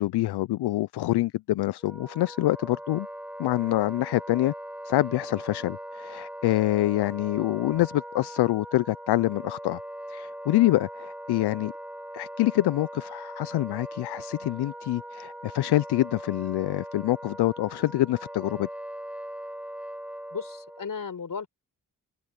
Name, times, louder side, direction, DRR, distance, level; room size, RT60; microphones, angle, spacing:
voice 1, 0.0-3.1 3.4-4.5 4.8-9.8 10.1-11.7 12.1-18.7, left 16 dB, 75° left, 0.6 m, -26 dB
Wind instrument woodwind instrument, 1.8-20.9, right 1 dB, 5° right, 0.9 m, -40 dB
voice 2, 20.3-21.5, left 6 dB, 55° left, 4.4 m, -35 dB
open air
supercardioid pair, 40°, 40 cm